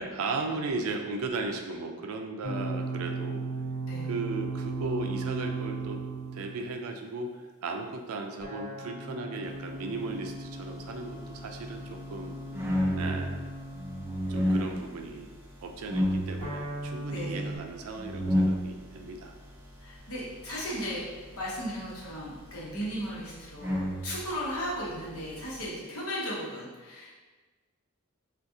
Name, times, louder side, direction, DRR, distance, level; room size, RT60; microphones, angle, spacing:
voice 1, 0.0-3.4 4.1-6.0 6.3-7.3 7.6-12.4 13.0-13.4 14.3-15.3 15.6-19.3, right 3 dB, 80° right, 4 dB, 0.4 m, -36 dB
sound 1, 2.4-6.7 8.4-14.4 16.4-17.6, right 2 dB, 35° left, 1.0 m, -37 dB
sound 2, 10.2-25.7, equal, 10° right, 0.4 m, -34 dB
voice 2, 17.1-17.4 19.8-21.0 21.3-27.1, equal, 75° left, -6 dB, 1.0 m, -36 dB
3.6 x 2.4 x 2.6 m, 1.3 s
head